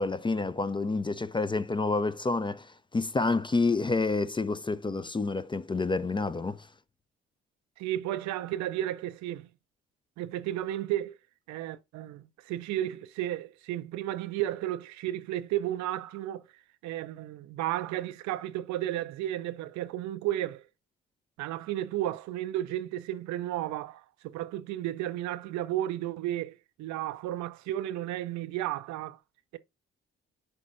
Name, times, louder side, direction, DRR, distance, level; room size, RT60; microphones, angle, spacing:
voice 1, 0.0-6.7, left 3 dB, 15° left, 0.4 m, -29 dB
voice 2, 7.8-9.5 10.2-11.2 11.5-16.4 16.8-20.6 21.4-29.2, right 13 dB, 70° right, 0.5 m, -33 dB
9.9 x 4.1 x 2.5 m
hypercardioid pair, 45°, 29 cm